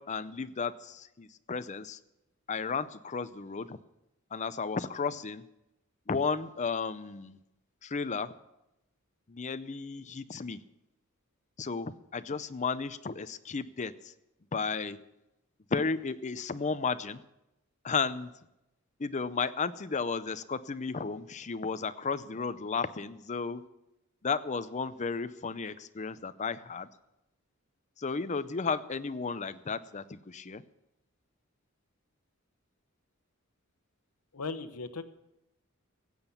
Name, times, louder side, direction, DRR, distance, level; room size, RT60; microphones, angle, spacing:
voice 1, 0.0-2.0 2.5-3.8 4.3-5.4 6.1-7.4 7.8-8.3 9.3-10.6 11.6-14.1 14.5-15.0 15.7-17.2 17.8-18.3 19.0-23.6 24.2-26.9 28.0-30.6, left 5 dB, 35° left, 14 dB, 0.6 m, -33 dB
voice 2, 34.3-35.0, left 4 dB, 85° left, 11 dB, 1.0 m, -37 dB
15.5 x 8.9 x 7.0 m, 0.91 s
head